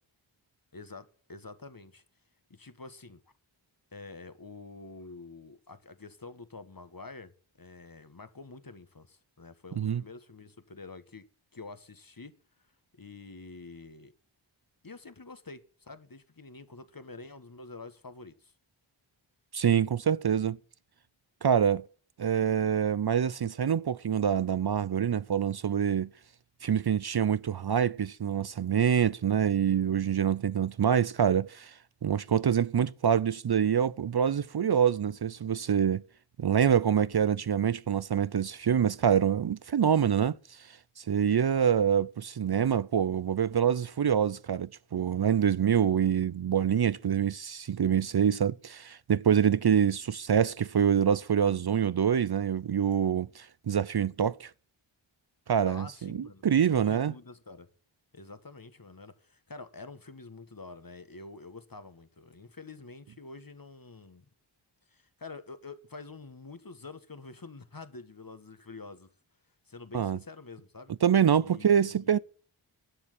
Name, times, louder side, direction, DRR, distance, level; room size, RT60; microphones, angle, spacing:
voice 1, 0.7-2.0 2.5-3.2 3.9-11.2 11.5-12.3 13.0-14.1 14.8-18.5 55.7-57.7 58.1-64.2 64.9-69.1 69.7-70.9 71.4-72.2, left 3 dB, 45° left, 1.6 m, -47 dB
voice 2, 19.5-20.6 21.4-21.8 22.2-26.1 26.6-31.7 32.0-36.0 36.4-40.4 41.0-54.5 55.5-57.1 69.9-70.2 71.0-72.2, right 8 dB, 50° right, 0.6 m, -26 dB
11.5 x 7.4 x 8.3 m
wide cardioid pair, 40°, 49 cm